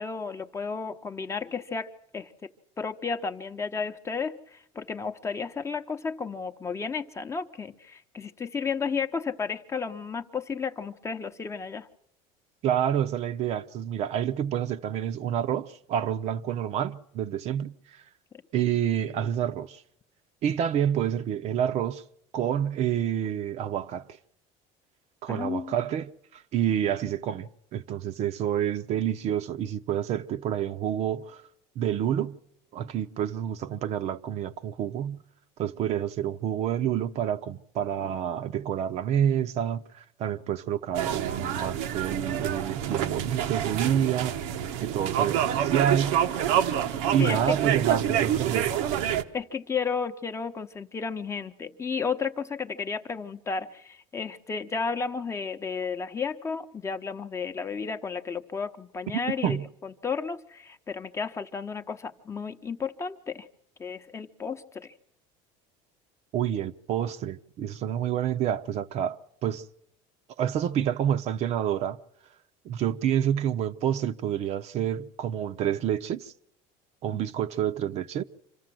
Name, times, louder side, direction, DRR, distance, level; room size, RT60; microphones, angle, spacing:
voice 1, 0.0-2.3 2.8-11.9 25.3-25.7 47.2-47.5 49.3-59.6 59.8-63.5 63.8-64.9, left 5 dB, 20° left, 0.8 m, -33 dB
voice 2, 12.6-17.8 18.5-19.8 20.4-22.0 22.3-24.1 25.2-31.4 31.8-32.4 32.7-35.2 35.6-44.4 44.8-46.2 47.1-48.8 59.4-59.7 66.3-69.6 70.4-72.0 72.6-76.3 77.0-78.2, right 10 dB, 50° right, 0.7 m, -28 dB
sound 1, 40.9-49.2, right 10 dB, 85° right, 1.1 m, -27 dB
26.5 x 14.5 x 7.6 m
cardioid pair, 135°, 15 cm